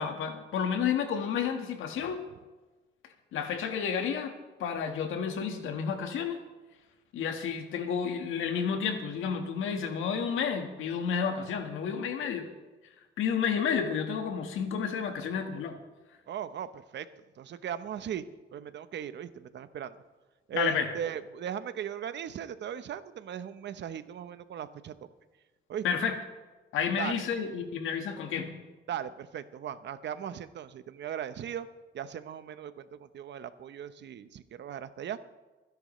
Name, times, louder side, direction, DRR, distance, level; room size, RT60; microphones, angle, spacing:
voice 1, 0.0-2.2 3.3-4.3 4.6-6.4 7.1-12.5 13.2-15.8 20.5-20.9 25.8-26.1 26.7-28.7, left 7 dB, 85° left, 6 dB, 1.6 m, -31 dB
voice 2, 16.3-17.1 17.4-18.2 18.5-20.0 20.5-25.1 25.7-25.8 27.0-27.2 28.9-31.7 31.9-35.3, right 9 dB, 65° right, 12 dB, 0.9 m, -38 dB
28.5 x 10.5 x 3.2 m, 1.2 s
cardioid pair, 90°, 20 cm